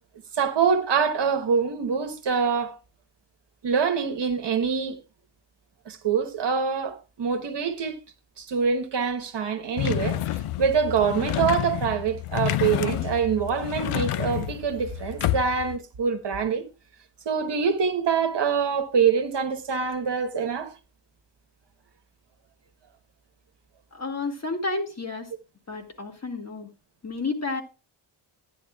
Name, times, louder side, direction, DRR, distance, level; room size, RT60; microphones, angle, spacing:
voice 1, 0.3-2.8 3.6-5.0 5.9-8.0 8.4-16.6 17.2-20.7, right 6 dB, 55° right, 1.2 m, -25 dB
sound 1, 9.8-15.8, left 13 dB, 85° left, 0.6 m, -29 dB
voice 2, 23.9-25.3 25.7-26.7 27.0-27.6, left 3 dB, 30° left, 1.7 m, -31 dB
13.0 x 10.5 x 2.3 m
wide cardioid pair, 125°, 50 cm